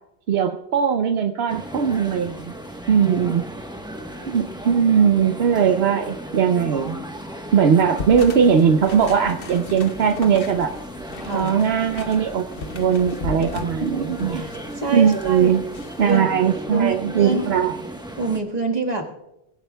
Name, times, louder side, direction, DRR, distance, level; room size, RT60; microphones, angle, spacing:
voice 1, 0.3-2.5 2.9-3.4 4.3-7.0 7.5-10.7 11.3-12.5 12.7-14.4 14.9-15.6 16.0-17.7, right 7 dB, 75° right, 6 dB, 0.9 m, -19 dB
sound 1, 1.5-18.4, right 1 dB, 5° right, 1.0 m, -36 dB
sound 2, 8.0-16.2, left 4 dB, 60° left, 1.1 m, -36 dB
voice 2, 11.2-11.5 13.8-14.0 14.4-15.5 16.1-16.2 16.7-17.6 18.2-19.0, right 3 dB, 40° right, 1 dB, 1.7 m, -26 dB
22.5 x 16.5 x 2.3 m, 0.91 s
omnidirectional pair, 1.1 m